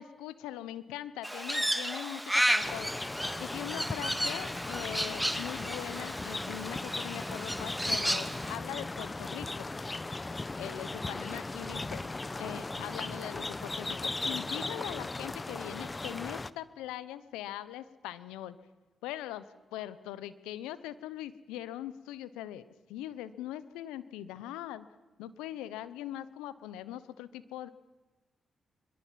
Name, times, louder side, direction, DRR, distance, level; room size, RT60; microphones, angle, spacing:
voice 1, 0.0-2.9 3.4-9.7 10.6-12.1 12.4-18.6 19.0-19.5 19.7-22.6 22.9-24.9 25.2-27.7, left 12 dB, 90° left, 15 dB, 1.0 m, -41 dB
Crow, 1.2-8.6, equal, 5° right, 2.2 m, -33 dB
sound 1, 2.6-16.5, left 2 dB, 30° left, 0.9 m, -37 dB
23.5 x 22.5 x 7.6 m, 1.2 s
hypercardioid pair, 40°, 0 cm